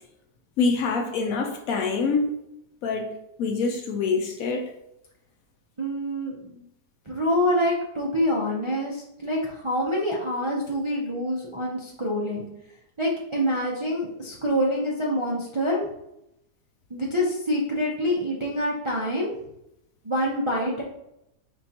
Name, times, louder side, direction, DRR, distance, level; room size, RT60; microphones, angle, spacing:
voice 1, 0.6-2.3 2.8-4.6, left 4 dB, 70° left, 4 dB, 0.9 m, -25 dB
voice 2, 5.8-6.6 7.1-12.5 13.0-15.8 16.9-19.3 20.0-20.8, equal, 45° right, -5 dB, 0.4 m, -26 dB
5.0 x 3.6 x 2.8 m, 0.82 s
omnidirectional pair, 1.8 m